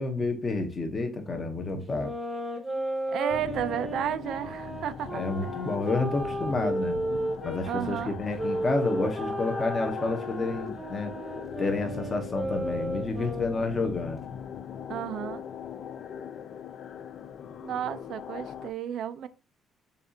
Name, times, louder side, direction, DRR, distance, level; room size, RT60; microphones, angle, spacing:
voice 1, 0.0-2.1 5.1-7.0 7.4-11.1 11.6-14.2, left 3 dB, 20° left, 0.8 m, -30 dB
sound 1, 1.8-7.7 8.4-13.8, right 1 dB, 10° right, 0.9 m, -34 dB
voice 2, 3.1-5.2 7.6-8.2 14.9-15.4 17.6-19.3, right 10 dB, 55° right, 0.3 m, -32 dB
sound 2, 3.3-18.7, left 8 dB, 50° left, 0.4 m, -40 dB
6.7 x 2.4 x 2.7 m
cardioid pair, 170°, 0 cm